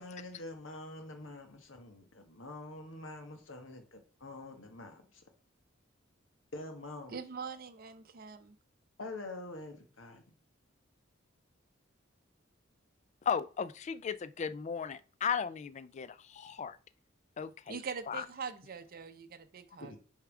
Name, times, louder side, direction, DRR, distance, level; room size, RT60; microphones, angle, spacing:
voice 1, 0.0-5.2 6.5-7.2 9.0-10.2 19.8-20.0, left 2 dB, 75° left, 1.3 m, -46 dB
voice 2, 7.1-8.6 17.7-19.9, right 5 dB, 50° right, 0.6 m, -43 dB
voice 3, 13.3-16.8 17.4-17.8 18.1-18.2, left 7 dB, 35° left, 0.4 m, -36 dB
6.7 x 3.6 x 4.8 m
head